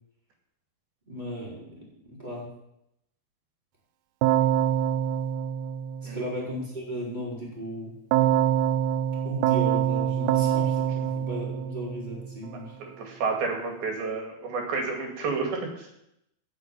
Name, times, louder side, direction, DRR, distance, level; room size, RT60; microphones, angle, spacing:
voice 1, 1.1-2.5 6.1-7.9 9.2-12.8, equal, 10° right, -5 dB, 4.1 m, -36 dB
Keyboard (musical), 4.2-6.5 8.1-12.4, right 10 dB, 90° right, 2.7 m, -25 dB
voice 2, 12.8-16.0, right 4 dB, 70° right, 2 dB, 4.1 m, -30 dB
9.5 x 8.3 x 9.0 m, 0.83 s
omnidirectional pair, 4.6 m